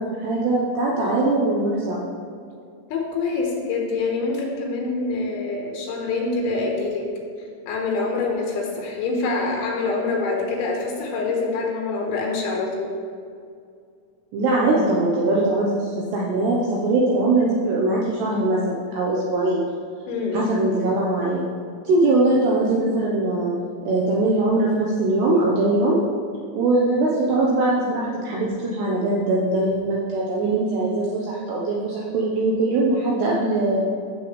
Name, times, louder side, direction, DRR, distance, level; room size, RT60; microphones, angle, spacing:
voice 1, 0.0-2.0 14.3-19.6 20.3-21.4 21.9-23.5 23.8-26.0 26.6-33.8, right 2 dB, 75° right, -4 dB, 2.5 m, -21 dB
voice 2, 2.9-7.1 7.7-12.9 20.1-20.5, left 3 dB, 75° left, 0 dB, 3.4 m, -25 dB
13.5 x 7.5 x 3.2 m, 2.3 s
omnidirectional pair, 5.9 m